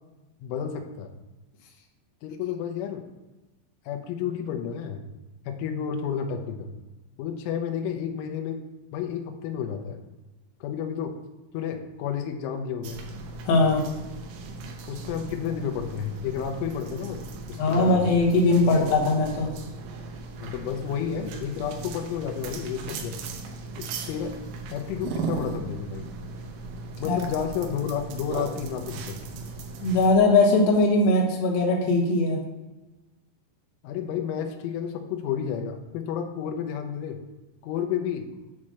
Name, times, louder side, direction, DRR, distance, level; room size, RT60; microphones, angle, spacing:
voice 1, 0.4-1.1 2.2-3.0 3.9-5.1 5.5-6.7 7.2-8.6 8.9-10.0 10.6-11.1 11.5-13.0 14.9-17.2 17.5-18.1 20.4-23.2 23.8-24.4 24.7-26.1 27.0-29.2 33.8-37.2 37.6-38.3, left 8 dB, 80° left, 4 dB, 3.0 m, -31 dB
sound 1, 12.8-30.2, right 4 dB, 85° right, 3.1 m, -37 dB
voice 2, 13.4-13.8 17.6-19.5 27.0-27.2 29.8-32.4, left 2 dB, 65° left, -1 dB, 2.5 m, -20 dB
8.6 x 3.2 x 6.1 m, 1.1 s
omnidirectional pair, 5.9 m